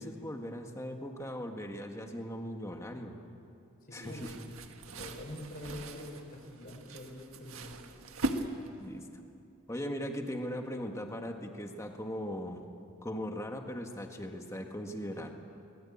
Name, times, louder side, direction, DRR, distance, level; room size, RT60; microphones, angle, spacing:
voice 1, 0.0-3.2 3.9-4.5 8.8-9.1 9.7-12.6 13.0-15.3, equal, 15° left, 4 dB, 1.7 m, -39 dB
voice 2, 3.9-4.2 4.9-7.7, left 1 dB, 45° left, 1 dB, 4.8 m, -45 dB
sound 1, 4.0-9.0, right 1 dB, 80° right, 1.6 m, -40 dB
24.0 x 20.5 x 8.8 m, 2.7 s
head